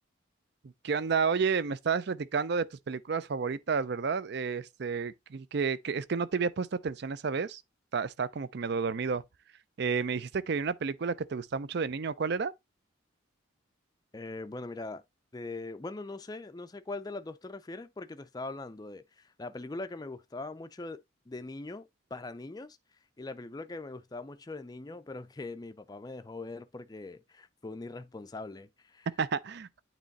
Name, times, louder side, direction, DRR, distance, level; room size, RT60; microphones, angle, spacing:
voice 1, 0.8-7.6 7.9-9.2 9.8-12.5 29.2-29.8, right 5 dB, 55° right, 0.4 m, -31 dB
voice 2, 14.1-15.0 15.3-22.8 23.2-29.1, left 2 dB, 20° left, 0.4 m, -41 dB
8.9 x 3.1 x 4.0 m
head